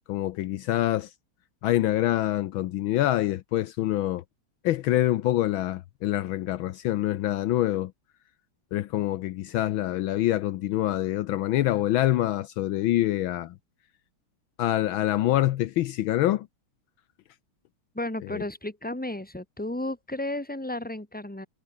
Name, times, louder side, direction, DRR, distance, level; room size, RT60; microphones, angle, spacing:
voice 1, 0.1-1.1 1.6-4.2 4.6-7.9 8.7-13.5 14.6-16.5 18.3-18.4, left 14 dB, 75° left, 1.4 m, -25 dB
voice 2, 17.9-21.5, left 1 dB, 5° left, 2.7 m, -33 dB
omnidirectional pair, 2.3 m